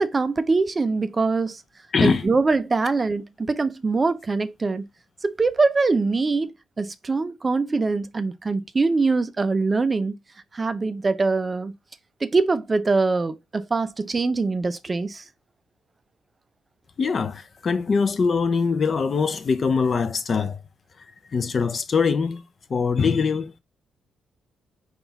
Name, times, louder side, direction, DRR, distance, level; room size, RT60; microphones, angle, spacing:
voice 1, 0.0-1.6 2.0-4.9 5.2-10.2 10.5-11.7 12.2-15.2, right 3 dB, 25° right, 0.4 m, -23 dB
voice 2, 1.9-2.3 17.0-20.6 21.3-22.4 22.7-23.5, left 5 dB, 40° left, 0.5 m, -22 dB
3.8 x 2.3 x 3.9 m
cardioid pair, 90°, 0 cm